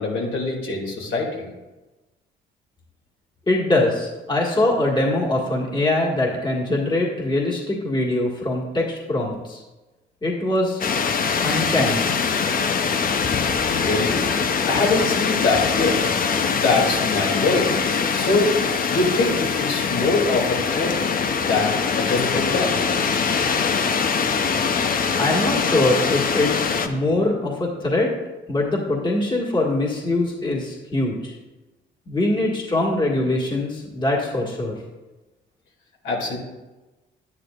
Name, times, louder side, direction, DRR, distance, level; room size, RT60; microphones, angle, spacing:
voice 1, 0.0-1.5 13.8-14.2 14.7-17.8 18.1-18.5 18.9-20.9 21.4-22.8 36.0-36.4, left 3 dB, 75° left, -2 dB, 2.6 m, -23 dB
voice 2, 3.5-9.6 10.2-10.8 11.4-12.1 25.2-28.1 28.5-31.3 32.1-34.7, left 2 dB, 25° left, -3 dB, 1.8 m, -22 dB
sound 1, 10.8-26.9, left 6 dB, 45° left, 0.7 m, -23 dB
10.0 x 9.6 x 2.5 m, 1.1 s
cardioid pair, 90°, 20 cm